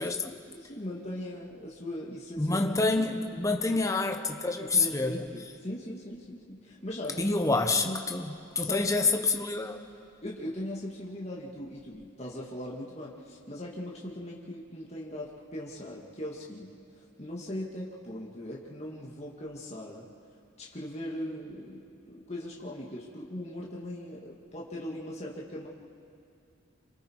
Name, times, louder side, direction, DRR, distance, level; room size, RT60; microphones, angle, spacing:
voice 1, 0.0-3.0 4.6-7.4 7.8-8.1 8.6-9.1 10.2-20.0 20.6-25.7, left 1 dB, 30° left, -4 dB, 2.2 m, -39 dB
voice 2, 2.4-5.2 7.2-9.8, left 3 dB, 15° left, 4 dB, 1.0 m, -27 dB
28.0 x 26.0 x 4.8 m, 2.4 s
head